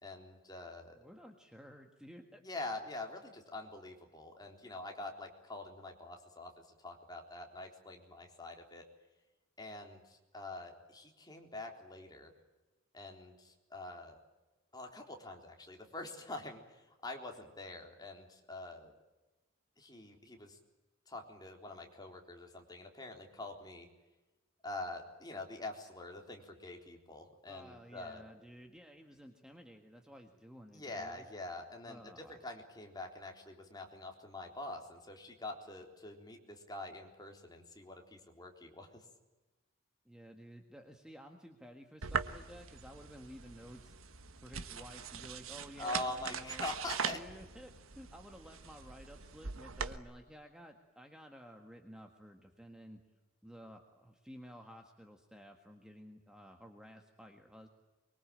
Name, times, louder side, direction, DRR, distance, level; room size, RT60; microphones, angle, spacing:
voice 1, 0.0-1.0 2.4-6.5 6.8-8.8 9.6-12.3 12.9-14.2 14.7-18.9 19.8-20.6 21.1-23.9 24.6-28.3 30.7-39.0 45.8-47.2, left 2 dB, 20° left, 2 dB, 3.8 m, -45 dB
voice 2, 1.0-2.4 27.5-31.3 31.8-32.4 40.0-43.9 44.4-46.6 47.1-53.0 53.4-57.7, equal, 5° right, 3 dB, 1.7 m, -53 dB
sound 1, 42.0-50.0, right 6 dB, 80° right, 1.4 m, -41 dB
24.5 x 23.0 x 8.9 m, 1.1 s
head